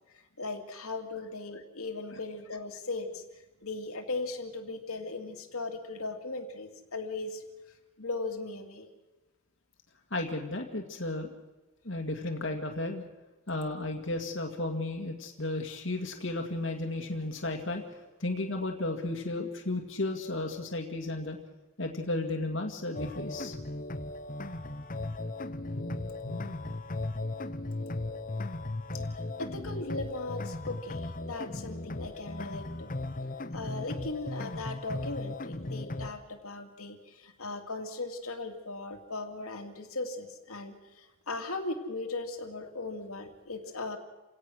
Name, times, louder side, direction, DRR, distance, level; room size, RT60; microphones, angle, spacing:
voice 1, 0.4-3.2 3.6-7.4 8.0-8.9 28.9-29.0 29.4-32.9 33.5-44.0, left 3 dB, 85° left, 4 dB, 2.6 m, -38 dB
voice 2, 10.1-11.3 11.8-13.0 13.5-21.4 21.8-23.6 25.7-26.5, left 2 dB, 60° left, 3 dB, 2.1 m, -34 dB
sound 1, 22.9-36.1, left 2 dB, 40° left, 1.0 m, -37 dB
29.5 x 17.5 x 6.4 m, 1.2 s
head